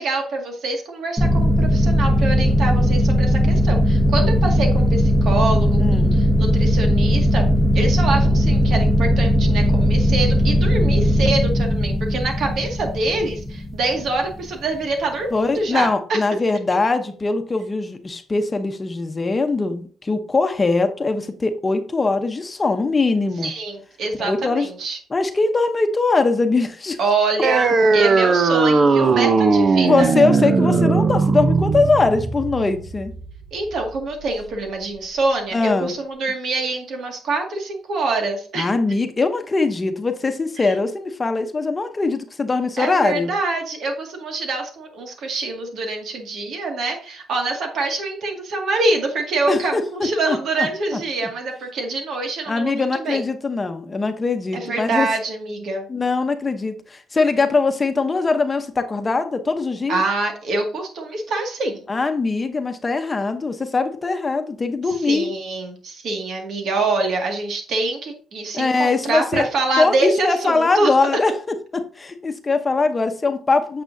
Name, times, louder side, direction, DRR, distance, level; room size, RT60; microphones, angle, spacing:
voice 1, 0.0-7.4 7.7-16.2 23.4-25.0 27.0-30.1 33.5-38.7 40.6-40.7 42.8-53.2 54.5-55.9 59.9-61.8 64.9-71.0, right 3 dB, 70° right, 3 dB, 2.1 m, -25 dB
sound 1, 1.2-14.4, equal, ahead, 1.0 m, -18 dB
voice 2, 5.8-6.1 15.3-23.5 24.2-24.7 25.1-27.0 29.8-33.1 35.5-35.9 38.6-43.3 49.5-49.8 50.3-50.7 52.5-55.1 55.9-60.0 61.9-65.3 68.5-69.5 69.8-73.8, left 3 dB, 25° left, 7 dB, 0.9 m, -21 dB
sound 2, 27.4-34.4, right 4 dB, 45° right, 0.8 m, -18 dB
8.8 x 6.7 x 2.7 m, 0.43 s
cardioid pair, 90°, 0 cm